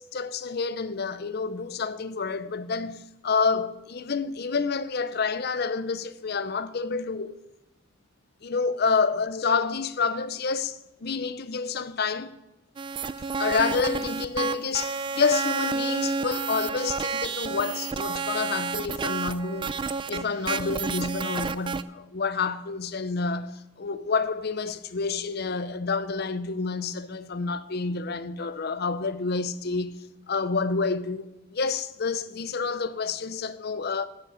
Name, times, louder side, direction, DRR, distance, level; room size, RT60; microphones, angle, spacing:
voice 1, 0.0-7.4 8.4-12.3 13.4-19.8 20.1-30.0 30.3-34.1, left 4 dB, 50° left, 0.6 m, -28 dB
sound 1, 12.8-21.8, right 5 dB, 25° right, 0.3 m, -30 dB
9.5 x 7.2 x 8.6 m
head